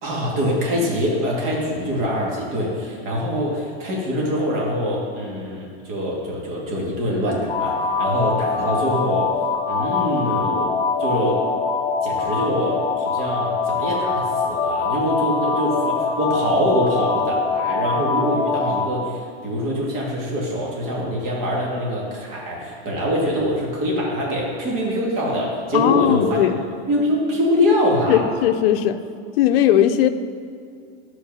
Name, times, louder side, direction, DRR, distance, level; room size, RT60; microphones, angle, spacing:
voice 1, 0.0-9.3 9.7-11.4 12.0-26.5 26.9-28.2, equal, 40° right, -3 dB, 2.2 m, -24 dB
sound 1, 7.5-18.9, left 4 dB, 15° left, 0.9 m, -23 dB
voice 2, 25.7-26.6 28.1-29.0 29.4-30.1, left 11 dB, 60° left, 9 dB, 0.6 m, -18 dB
12.5 x 4.6 x 5.5 m, 2.3 s
supercardioid pair, 150°, 33 cm